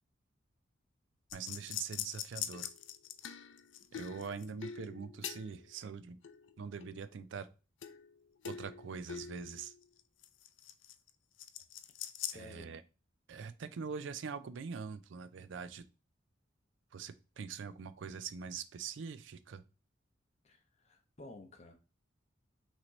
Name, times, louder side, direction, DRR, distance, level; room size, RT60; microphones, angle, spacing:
sound 1, 1.3-5.8 6.2-7.1 7.8-8.2 8.4-11.1 11.4-12.4, left 9 dB, 70° left, 0.4 m, -44 dB
voice 1, 1.3-2.7 3.9-6.2 6.6-7.5 8.4-9.7 12.3-12.8 13.3-15.8 16.9-19.6, right 6 dB, 70° right, 13 dB, 0.4 m, -43 dB
voice 2, 12.2-12.8 20.4-21.7, left 2 dB, 35° left, 3 dB, 0.8 m, -53 dB
5.8 x 2.8 x 3.1 m, 0.32 s
head